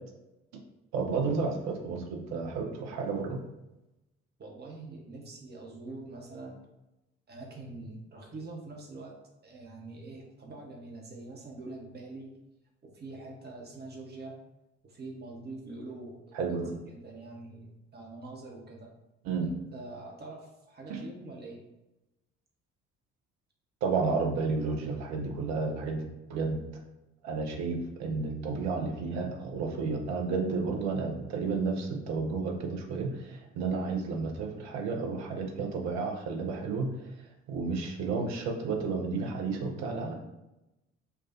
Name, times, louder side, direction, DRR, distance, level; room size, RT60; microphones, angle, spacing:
voice 1, 0.9-3.4 16.3-16.7 19.2-19.5 20.9-21.0 23.8-26.6 27.2-36.9 37.5-40.1, right 4 dB, 55° right, 3 dB, 0.7 m, -31 dB
voice 2, 4.4-6.6 7.3-9.2 9.4-12.3 12.8-14.4 14.8-16.6 16.9-18.9 19.4-21.6, right 2 dB, 30° right, 0 dB, 0.9 m, -44 dB
4.6 x 2.4 x 2.6 m, 0.95 s
figure-of-eight pair, 45°, 34 cm